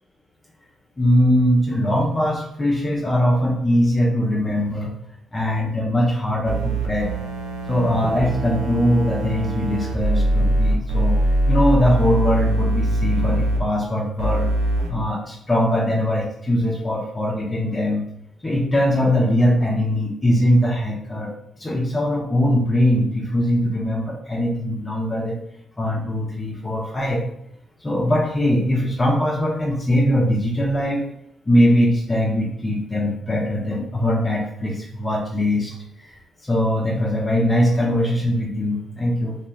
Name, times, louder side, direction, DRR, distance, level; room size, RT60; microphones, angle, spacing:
voice 1, 1.0-4.9 5.3-7.1 7.7-11.2 11.5-14.5 14.9-18.0 18.4-25.4 25.8-27.2 27.8-31.0 31.5-35.7 36.0-36.1 36.4-39.4, equal, 30° left, -3 dB, 0.6 m, -21 dB
sound 1, 6.4-13.6 14.2-14.9, right 1 dB, 80° right, 0.4 m, -22 dB
2.4 x 2.2 x 3.0 m, 0.72 s
hypercardioid pair, 40°, 0 cm